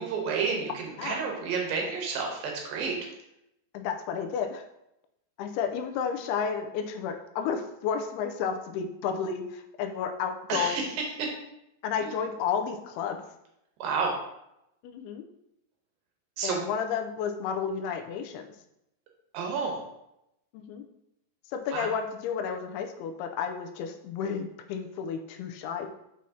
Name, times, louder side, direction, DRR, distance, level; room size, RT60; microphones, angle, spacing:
voice 1, 0.0-3.0 10.5-11.3 12.0-12.1 13.8-14.1 16.4-16.6 19.3-19.8 21.7-21.9, right 5 dB, 75° right, 0 dB, 2.5 m, -30 dB
voice 2, 3.7-4.6 5.4-10.9 11.8-13.2 14.8-15.2 16.4-18.5 20.5-20.8 21.5-25.9, left 7 dB, 85° left, 5 dB, 2.6 m, -32 dB
6.2 x 5.7 x 2.7 m, 0.84 s
omnidirectional pair, 4.5 m